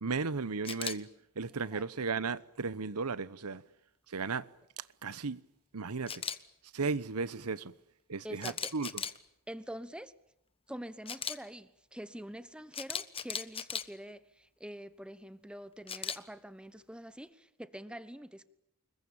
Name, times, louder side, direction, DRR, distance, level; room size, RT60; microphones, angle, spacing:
voice 1, 0.0-1.1 1.4-3.6 4.1-4.5 4.8-5.4 5.7-6.2 6.7-7.7 8.1-9.0, right 4 dB, 85° right, 1.0 m, -35 dB
Camera, 0.7-1.0 6.1-6.4 8.4-9.2 11.1-11.4 12.7-13.8 15.9-16.2, left 7 dB, 25° left, 1.2 m, -36 dB
voice 2, 1.5-1.9 8.2-8.7 9.5-10.1 10.7-18.5, equal, 5° right, 1.1 m, -46 dB
26.0 x 22.0 x 8.8 m
head